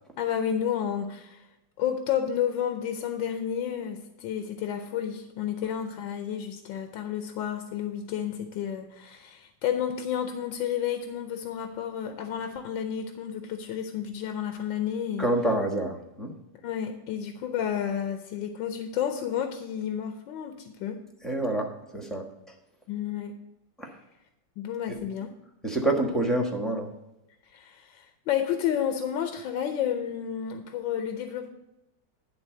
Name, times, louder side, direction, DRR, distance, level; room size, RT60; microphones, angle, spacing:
voice 1, 0.2-1.5 1.8-15.3 16.6-21.0 22.9-23.4 24.6-25.3 27.5-31.5, left 9 dB, 75° left, 6 dB, 1.4 m, -31 dB
voice 2, 15.2-16.3 21.2-22.2 23.8-24.0 24.9-25.0 25.6-26.9, right 1 dB, ahead, 2 dB, 0.8 m, -27 dB
11.0 x 3.8 x 7.6 m, 0.93 s
omnidirectional pair, 2.1 m